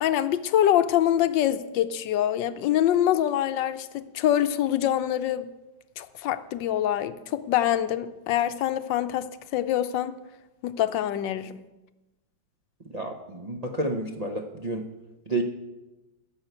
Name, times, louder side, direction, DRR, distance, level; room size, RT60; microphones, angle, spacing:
voice 1, 0.0-5.5 6.0-10.1 10.6-11.6, left 11 dB, 70° left, 1.3 m, -25 dB
voice 2, 12.9-14.9 15.3-15.4, right 2 dB, 50° right, 0.4 m, -30 dB
14.0 x 6.4 x 8.1 m
omnidirectional pair, 2.2 m